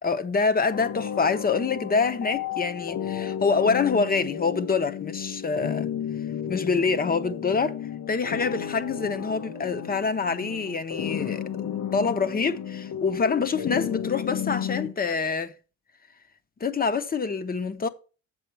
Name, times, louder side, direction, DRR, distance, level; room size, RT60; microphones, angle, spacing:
voice 1, 0.0-5.9 6.5-7.8 8.1-15.5 16.6-17.9, left 5 dB, 30° left, 0.8 m, -26 dB
sound 1, 0.7-14.9, left 9 dB, 75° left, 1.0 m, -33 dB
7.7 x 6.4 x 4.5 m
cardioid pair, 90°, 30 cm